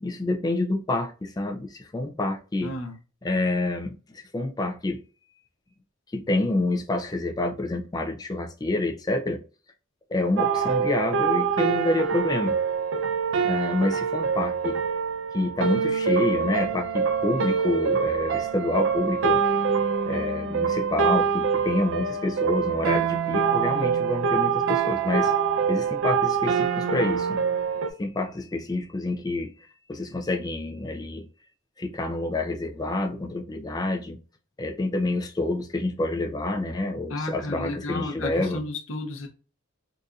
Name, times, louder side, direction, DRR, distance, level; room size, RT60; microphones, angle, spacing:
voice 1, 0.0-2.7 3.2-5.0 6.1-9.4 10.1-12.6 13.4-14.8 15.3-19.4 20.1-25.3 25.7-27.4 28.0-29.5 29.9-31.3 31.8-34.2 34.6-38.6, left 2 dB, 20° left, 0.4 m, -28 dB
voice 2, 2.6-3.0 37.1-39.3, left 2 dB, 65° left, 0.8 m, -32 dB
sound 1, 10.4-27.9, right 6 dB, 60° right, 0.4 m, -25 dB
4.0 x 2.6 x 2.3 m
head